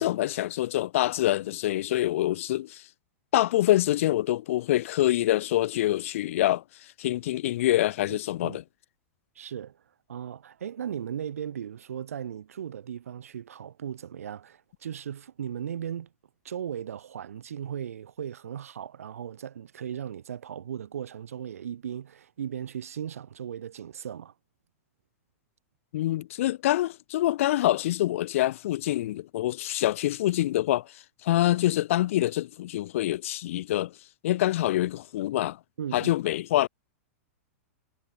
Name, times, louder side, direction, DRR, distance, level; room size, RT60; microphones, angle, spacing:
voice 1, 0.0-2.8 3.3-6.6 7.0-8.6 25.9-33.9 34.2-35.6 35.9-36.7, left 14 dB, 70° left, 0.4 m, -25 dB
voice 2, 8.1-8.6 9.4-9.8 10.1-16.1 16.4-24.3 35.8-36.1, right 9 dB, 90° right, 1.0 m, -37 dB
hypercardioid pair, 130°, 8 cm